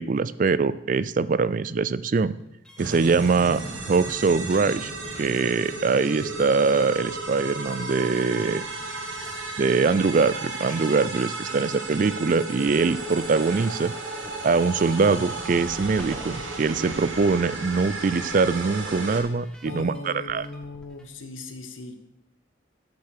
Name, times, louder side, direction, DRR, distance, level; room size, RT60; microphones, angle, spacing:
voice 1, 0.0-2.4 2.8-3.6 3.9-4.9 5.2-8.6 9.6-13.9 14.4-20.5, right 4 dB, 40° right, 17 dB, 0.4 m, -23 dB
sound 1, 2.3-21.0, left 1 dB, 5° left, 1.2 m, -50 dB
sound 2, 2.8-19.2, right 2 dB, 80° right, 2.2 m, -34 dB
voice 2, 19.6-22.0, left 2 dB, 85° left, 8 dB, 1.4 m, -38 dB
11.5 x 6.8 x 6.6 m, 0.84 s
head